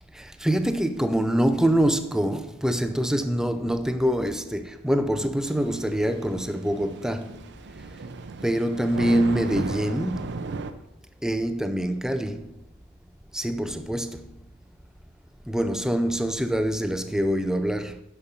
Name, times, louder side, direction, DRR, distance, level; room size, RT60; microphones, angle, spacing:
voice 1, 0.2-7.4 8.4-10.4 11.2-12.5 13.3-14.2 15.5-18.0, right 1 dB, 5° right, 0.5 m, -25 dB
Thunder / Rain, 5.4-10.7, right 3 dB, 50° right, 0.6 m, -36 dB
10.0 x 5.7 x 5.2 m
head